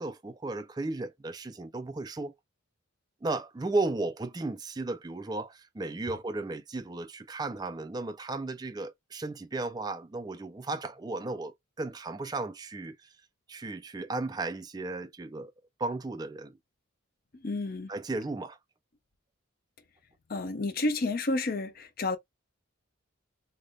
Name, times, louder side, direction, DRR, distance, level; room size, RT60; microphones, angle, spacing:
voice 1, 0.0-2.3 3.2-13.1 13.5-15.5 15.8-16.5 17.9-18.6, right 2 dB, 20° right, 0.3 m, -35 dB
voice 2, 17.3-17.9 20.3-22.2, left 2 dB, 45° left, 0.6 m, -30 dB
3.3 x 2.2 x 3.9 m
head